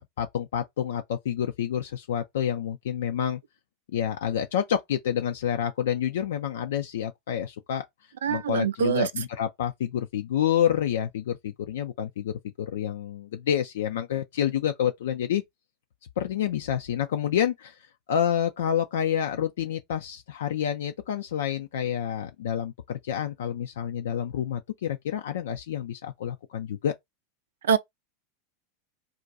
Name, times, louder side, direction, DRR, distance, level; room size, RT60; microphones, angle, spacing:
voice 1, 0.0-3.4 3.9-7.9 8.3-15.4 16.2-17.8 18.1-26.9, left 9 dB, 70° left, 0.3 m, -28 dB
voice 2, 8.2-9.1 27.7-27.8, right 7 dB, 75° right, 0.4 m, -24 dB
2.4 x 2.2 x 3.9 m
hypercardioid pair, 90°, 0 cm